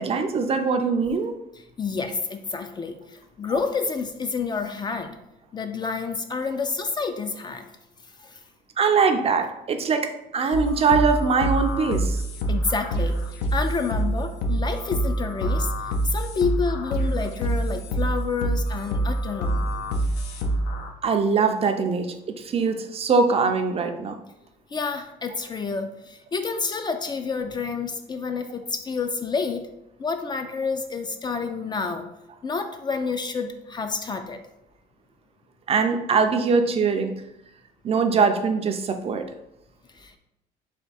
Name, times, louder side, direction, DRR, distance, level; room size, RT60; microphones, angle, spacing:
voice 1, 0.0-1.4 8.8-12.2 21.0-24.2 35.7-37.1 37.8-39.3, right 5 dB, 35° right, 6 dB, 0.4 m, -22 dB
voice 2, 1.5-5.2 5.5-7.7 8.2-8.4 12.5-13.2 13.5-15.7 16.0-19.7 24.7-29.7 30.0-32.1 32.4-34.4 39.9-40.2, left 5 dB, 25° left, 7 dB, 0.4 m, -29 dB
sound 1, 10.5-20.9, right 1 dB, 75° left, 0.6 m, -26 dB
3.5 x 2.8 x 4.0 m, 0.85 s
cardioid pair, 110°, 17 cm